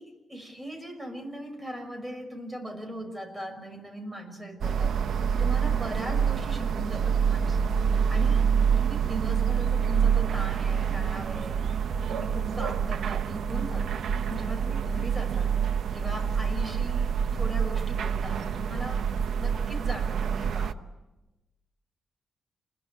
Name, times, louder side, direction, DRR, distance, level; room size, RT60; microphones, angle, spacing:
voice 1, 0.0-5.0 5.4-7.7 8.1-8.5 8.8-15.5 15.9-19.1 19.4-20.8, right 1 dB, 15° right, 6 dB, 5.7 m, -39 dB
sound 1, 4.6-20.7, right 7 dB, 75° right, 0.9 m, -26 dB
28.0 x 22.0 x 8.6 m, 1.0 s
wide cardioid pair, 130°, 0 cm